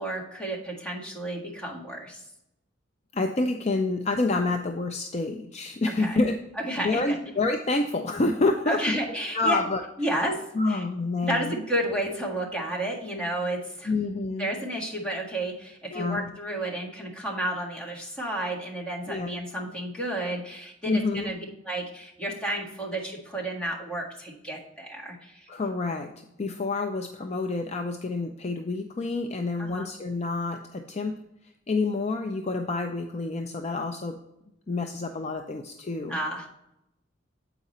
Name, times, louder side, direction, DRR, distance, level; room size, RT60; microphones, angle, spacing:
voice 1, 0.0-2.2 6.0-6.2 6.6-7.3 8.7-9.6 10.0-10.4 10.7-10.8 11.2-13.9 14.4-21.4 21.6-25.5 29.6-29.9 36.1-36.5, right 1 dB, 5° left, -3 dB, 1.7 m, -31 dB
voice 2, 3.1-6.4 6.8-9.0 9.3-9.8 10.5-11.6 13.9-14.5 15.9-16.3 19.1-19.3 20.9-21.3 25.5-26.1 26.4-31.1 31.7-34.2 34.7-36.2, left 3 dB, 35° left, 4 dB, 0.5 m, -28 dB
8.0 x 4.9 x 4.1 m, 0.84 s
head